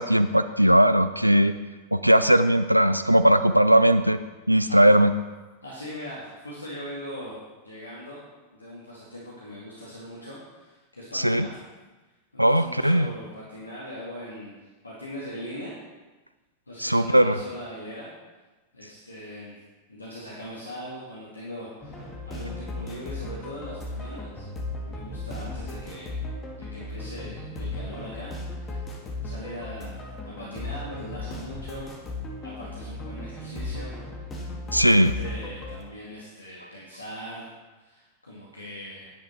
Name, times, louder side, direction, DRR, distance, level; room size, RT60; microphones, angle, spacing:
voice 1, 0.0-1.5 1.9-4.2 4.5-5.1 11.1-11.5 12.4-13.1 16.8-17.4 34.7-35.1, right 1 dB, 90° right, 12 dB, 0.3 m, -19 dB
voice 2, 5.6-7.4 7.6-8.3 8.5-11.6 12.3-15.7 16.7-18.1 18.7-19.6 19.9-24.5 24.8-26.2 26.5-28.9 29.2-31.9 32.4-33.9 34.3-37.5 37.8-39.1, equal, 80° left, -6 dB, 2.0 m, -40 dB
sound 1, 21.8-35.8, left 2 dB, 20° left, 1.9 m, -36 dB
10.5 x 8.7 x 4.2 m, 1.2 s
figure-of-eight pair, 90°, 0 cm